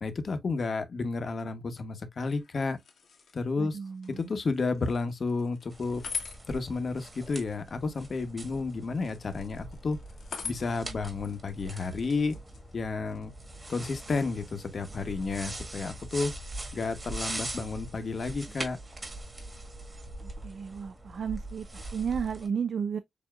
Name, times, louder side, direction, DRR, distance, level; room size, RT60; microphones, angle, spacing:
voice 1, 0.0-2.8 3.3-3.8 4.2-6.0 6.5-10.0 10.4-12.3 12.7-13.3 13.7-16.3 16.7-18.8, left 4 dB, 50° left, 1.0 m, -31 dB
sound 1, 2.2-14.6, left 6 dB, 80° left, 1.4 m, -46 dB
voice 2, 3.6-4.3 20.4-21.6 21.9-23.0, right 7 dB, 60° right, 0.4 m, -33 dB
sound 2, 5.7-22.5, right 2 dB, 25° right, 1.6 m, -42 dB
7.0 x 2.8 x 2.4 m
wide cardioid pair, 120°, 0 cm